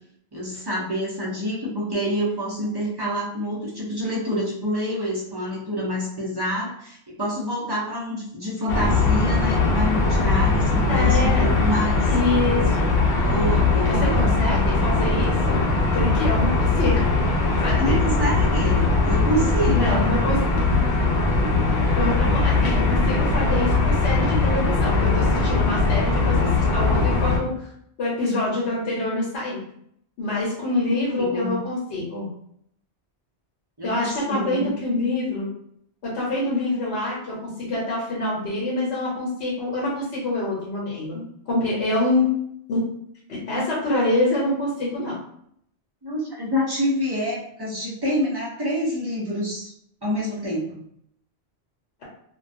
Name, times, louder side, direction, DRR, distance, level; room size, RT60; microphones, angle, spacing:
voice 1, 0.3-12.1 13.2-14.2 17.7-20.2 30.9-31.6 33.8-34.7 46.0-49.7 50.0-50.8, equal, 30° right, -5 dB, 0.5 m, -27 dB
sound 1, 8.7-27.4, left 3 dB, 70° left, 0.8 m, -20 dB
voice 2, 10.9-11.4 12.1-12.9 13.9-15.6 15.9-17.0 17.5-18.0 19.7-20.4 22.0-27.7 28.0-29.6 30.2-32.3 33.8-35.5 36.0-42.3 42.7-42.8 43.3-45.2, left 2 dB, 85° left, -5 dB, 1.0 m, -26 dB
2.2 x 2.2 x 2.5 m, 0.69 s
omnidirectional pair, 1.1 m